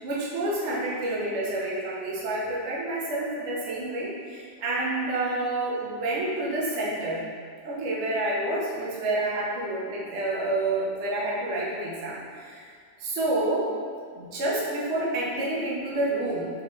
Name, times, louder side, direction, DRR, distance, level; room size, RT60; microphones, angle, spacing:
voice 1, 0.0-7.2 7.6-12.6 13.0-13.7 14.1-16.5, right 2 dB, 70° right, -6 dB, 0.6 m, -28 dB
3.5 x 3.0 x 3.0 m, 2.1 s
omnidirectional pair, 2.1 m